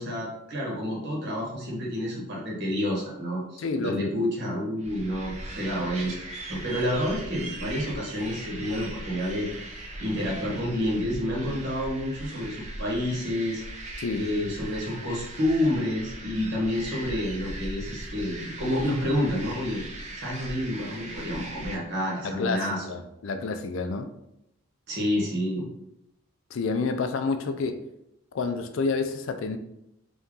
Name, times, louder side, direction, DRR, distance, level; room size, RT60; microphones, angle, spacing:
voice 1, 0.0-6.1 6.5-9.5 10.0-13.6 14.1-19.9 20.1-22.8 24.9-25.7, left 1 dB, 50° right, -3 dB, 1.1 m, -29 dB
voice 2, 3.6-4.1 14.0-14.3 22.2-24.1 26.5-27.8 28.3-29.6, left 4 dB, 60° left, 7 dB, 0.4 m, -29 dB
sound 1, 4.8-21.8, right 1 dB, 30° right, 0.5 m, -39 dB
3.5 x 2.8 x 3.7 m, 0.82 s
head